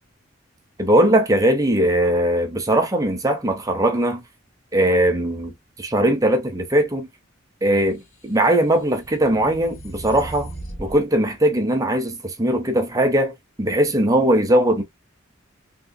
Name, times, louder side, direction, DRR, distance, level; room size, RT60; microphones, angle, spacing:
voice 1, 0.8-4.2 4.7-7.1 7.6-10.5 10.8-14.8, right 1 dB, 15° right, 0.6 m, -20 dB
sound 1, 8.1-11.0, right 1 dB, 90° left, 1.8 m, -37 dB
3.0 x 3.0 x 2.5 m
head